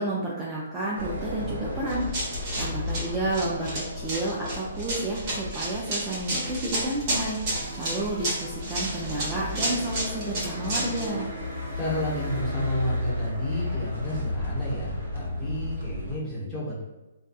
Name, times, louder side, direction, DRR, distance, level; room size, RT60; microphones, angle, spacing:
voice 1, 0.0-11.3, right 2 dB, 15° right, -5 dB, 0.3 m, -31 dB
sound 1, 1.0-16.2, left 2 dB, 90° right, 1.1 m, -34 dB
Run, 1.9-11.1, right 1 dB, 35° right, 1.0 m, -31 dB
sound 2, 7.4-12.4, equal, 65° left, 1.0 m, -43 dB
voice 2, 11.7-16.8, left 1 dB, 5° left, -10 dB, 0.9 m, -31 dB
2.7 x 2.2 x 2.3 m, 1.1 s
hypercardioid pair, 155°, 0 cm